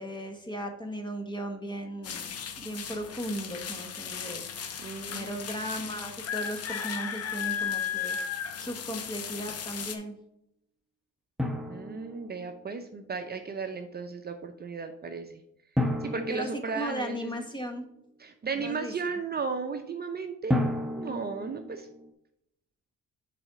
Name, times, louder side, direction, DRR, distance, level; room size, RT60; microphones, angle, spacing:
voice 1, 0.0-2.3 2.6-4.4 5.1-8.2 8.6-10.2 16.3-17.8 18.5-19.2, right 1 dB, 15° left, 4 dB, 1.4 m, -36 dB
sound 1, 2.0-10.0, left 8 dB, 55° left, 1.0 m, -35 dB
voice 2, 4.8-5.3 11.7-15.4 16.0-17.4 18.2-20.6 20.9-21.9, right 5 dB, 35° right, 5 dB, 0.7 m, -35 dB
Drum, 11.4-12.9 15.8-17.6 20.5-22.1, left 1 dB, ahead, 0.9 m, -32 dB
6.9 x 4.2 x 4.8 m, 0.77 s
cardioid pair, 90°, 30 cm